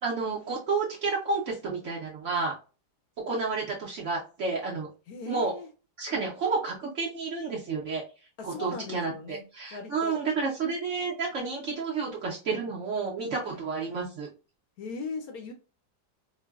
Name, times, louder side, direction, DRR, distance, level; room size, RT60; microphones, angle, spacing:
voice 1, 0.0-2.5 3.3-4.9 5.3-5.5 6.0-8.0 8.4-14.3, right 4 dB, 65° right, -3 dB, 0.8 m, -30 dB
voice 2, 5.1-5.7 8.4-9.4 9.7-10.2 13.5-13.6 14.8-15.5, left 4 dB, 70° left, 5 dB, 0.9 m, -38 dB
4.4 x 2.1 x 2.3 m, 0.34 s
omnidirectional pair, 1.8 m